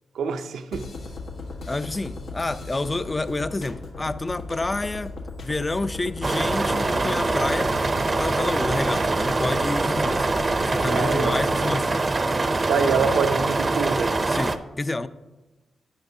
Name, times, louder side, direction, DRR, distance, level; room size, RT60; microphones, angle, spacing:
voice 1, 0.1-0.9 10.8-11.7 12.7-14.2, right 6 dB, 85° right, 0.6 m, -26 dB
sound 1, 0.7-11.4, left 3 dB, 80° left, 1.4 m, -37 dB
voice 2, 1.7-5.1 5.4-7.7 8.2-10.3 10.7-12.0 14.3-15.1, left 2 dB, 30° left, 0.5 m, -28 dB
sound 2, 6.2-14.6, right 3 dB, 40° right, 0.6 m, -24 dB
12.5 x 8.7 x 2.7 m
cardioid pair, 60°, 0 cm